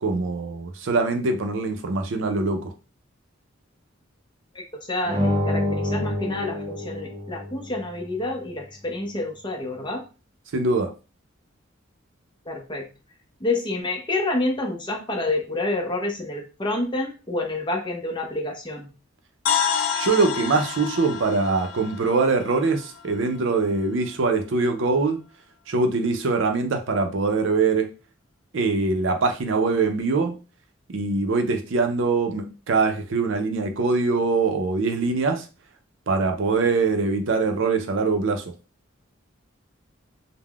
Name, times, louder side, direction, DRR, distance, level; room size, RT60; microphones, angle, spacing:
voice 1, 0.0-2.7 10.5-10.9 19.9-25.2 25.7-27.9 28.5-30.4 30.9-35.5 36.1-38.5, right 3 dB, 65° right, 0.5 m, -23 dB
voice 2, 4.5-10.0 12.5-12.9 13.4-18.9, left 2 dB, 25° left, 0.6 m, -28 dB
sound 1, 5.0-7.8, left 1 dB, 20° right, 0.6 m, -26 dB
sound 2, 19.5-23.4, left 7 dB, 80° left, 0.4 m, -29 dB
3.5 x 2.1 x 2.3 m
head